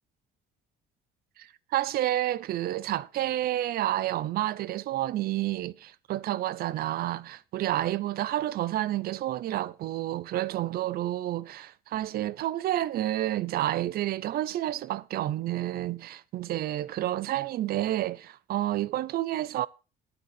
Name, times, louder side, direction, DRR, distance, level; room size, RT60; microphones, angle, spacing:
voice 1, 1.4-19.7, right 14 dB, 65° right, 0.6 m, -30 dB
9.6 x 7.9 x 5.8 m
cardioid pair, 110°, 17 cm